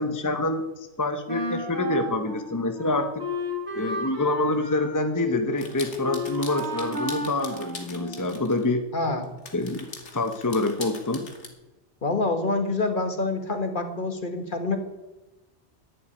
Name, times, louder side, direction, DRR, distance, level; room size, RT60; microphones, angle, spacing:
voice 1, 0.0-3.2 3.8-8.8 9.5-9.9 10.1-11.3, left 2 dB, 15° left, 7 dB, 1.0 m, -26 dB
Wind instrument woodwind instrument, 1.3-8.5, left 1 dB, 65° right, 3.5 m, -33 dB
sound 1, 5.6-8.6 9.2-11.5, left 3 dB, 80° left, 2.3 m, -42 dB
voice 2, 8.9-9.2 12.0-14.8, left 3 dB, 45° left, 6 dB, 1.8 m, -26 dB
11.0 x 11.0 x 9.8 m, 1.1 s
omnidirectional pair, 1.2 m